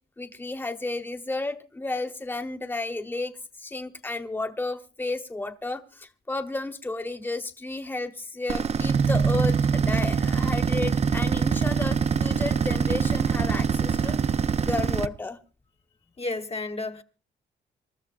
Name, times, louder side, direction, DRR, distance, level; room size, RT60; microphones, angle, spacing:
voice 1, 0.2-14.2 14.6-15.4, left 2 dB, 10° left, 1.1 m, -32 dB
sound 1, 8.5-15.1, right 6 dB, 35° right, 0.6 m, -24 dB
voice 2, 16.2-17.0, left 2 dB, 35° left, 1.1 m, -31 dB
26.5 x 13.0 x 2.5 m
cardioid pair, 95°, 18 cm